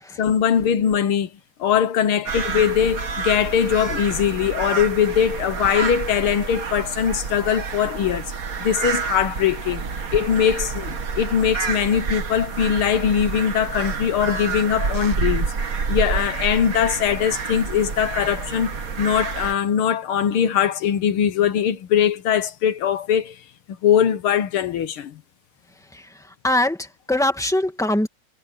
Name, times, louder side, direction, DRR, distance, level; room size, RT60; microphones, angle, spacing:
voice 1, 0.2-1.3 1.6-8.2 8.6-9.8 10.1-15.5 15.9-23.4 23.8-25.1, left 8 dB, 65° left, 1.4 m, -21 dB
sound 1, 2.3-19.5, right 5 dB, 40° right, 1.3 m, -28 dB
voice 2, 26.4-28.1, left 1 dB, ahead, 1.3 m, -22 dB
omnidirectional pair, 3.5 m